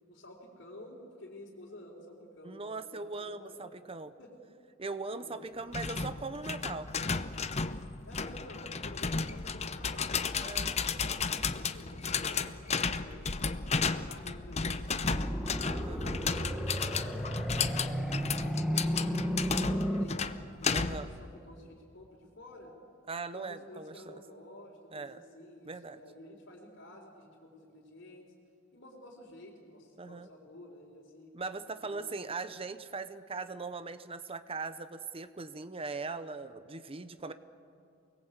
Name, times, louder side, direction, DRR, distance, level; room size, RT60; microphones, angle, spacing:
voice 1, 0.1-3.7 4.2-4.3 4.8-5.5 8.1-13.3 13.8-15.4 15.7-17.3 17.8-22.7 23.3-28.3 28.7-31.3 31.9-32.4, left 1 dB, 60° left, -6 dB, 3.9 m, -52 dB
voice 2, 2.4-4.1 4.8-6.9 10.4-10.8 15.7-16.0 20.7-21.1 23.1-24.2 24.9-25.2 25.6-26.0 30.0-30.3 31.3-37.3, right 3 dB, 30° right, 11 dB, 0.9 m, -40 dB
sound 1, 5.7-21.2, left 5 dB, 35° left, 0.8 m, -34 dB
sound 2, 15.0-20.0, equal, ahead, 1.2 m, -33 dB
28.5 x 21.0 x 8.2 m, 2.4 s
head